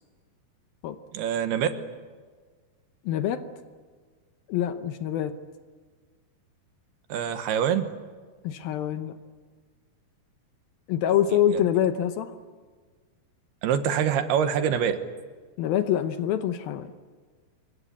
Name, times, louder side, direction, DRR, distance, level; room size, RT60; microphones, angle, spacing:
voice 1, 1.1-1.7 7.1-7.9 11.5-11.6 13.6-15.0, right 8 dB, 75° right, 9 dB, 3.1 m, -25 dB
voice 2, 3.0-3.4 4.5-5.4 8.4-9.2 10.9-12.3 15.6-17.0, left 10 dB, 75° left, 9 dB, 2.5 m, -25 dB
26.0 x 22.5 x 8.4 m, 1.5 s
omnidirectional pair, 4.8 m